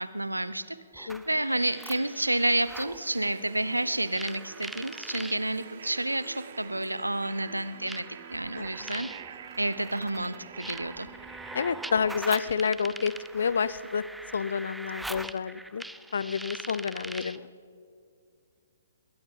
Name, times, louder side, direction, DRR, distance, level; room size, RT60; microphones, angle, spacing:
voice 1, 0.0-9.1 9.6-11.1, right 1 dB, 85° right, 15 dB, 0.7 m, -30 dB
sound 1, 0.9-3.0 4.1-5.4 6.5-6.6 7.9-17.5, right 1 dB, 5° right, 0.4 m, -42 dB
sound 2, 1.2-14.1, right 8 dB, 50° right, 1.0 m, -47 dB
voice 2, 11.5-14.0 14.3-15.8 16.1-17.4, left 6 dB, 60° left, 17 dB, 0.5 m, -29 dB
21.5 x 17.5 x 3.7 m, 2.3 s
figure-of-eight pair, 125°, 0 cm